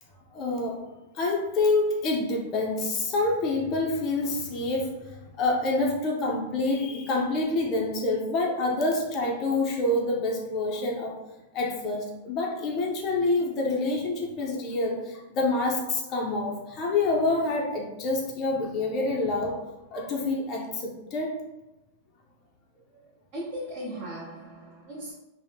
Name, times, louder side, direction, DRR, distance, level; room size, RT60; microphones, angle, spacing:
voice 1, 0.3-0.8 1.1-11.2 11.5-19.6 19.9-21.3, left 2 dB, 30° left, 0.4 m, -27 dB
voice 2, 23.3-25.1, equal, 40° right, 0.8 m, -37 dB
2.7 x 2.0 x 3.3 m
supercardioid pair, 155°, 0 cm